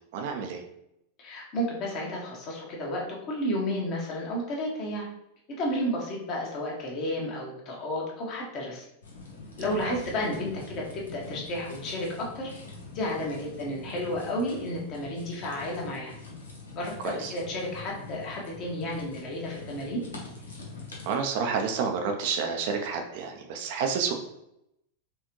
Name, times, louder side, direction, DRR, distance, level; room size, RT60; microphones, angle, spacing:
voice 1, 0.1-0.6 9.8-9.9 17.0-17.3 21.0-24.1, right 5 dB, 50° right, 3 dB, 0.6 m, -29 dB
voice 2, 1.2-5.1 5.6-8.8 9.6-12.5 12.9-16.1 16.7-20.0, left 1 dB, 40° left, -2 dB, 1.4 m, -32 dB
sound 1, 9.0-21.2, left 3 dB, 70° left, 1.1 m, -43 dB
4.4 x 3.4 x 3.1 m, 0.81 s
figure-of-eight pair, 90°, 0 cm